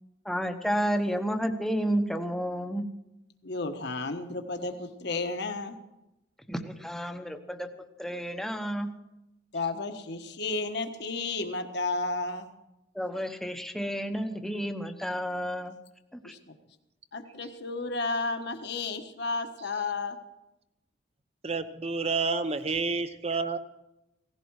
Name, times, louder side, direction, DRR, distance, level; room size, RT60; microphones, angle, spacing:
voice 1, 0.2-2.9 6.5-7.7 8.0-8.9 12.9-15.8 16.1-16.3, equal, ahead, 6 dB, 1.0 m, -31 dB
voice 2, 3.4-5.7 9.5-12.5 16.2-16.5 17.1-20.2, left 3 dB, 60° left, 6 dB, 1.4 m, -32 dB
voice 3, 21.4-23.6, right 4 dB, 35° right, 11 dB, 0.8 m, -29 dB
17.5 x 15.5 x 4.8 m, 0.93 s
head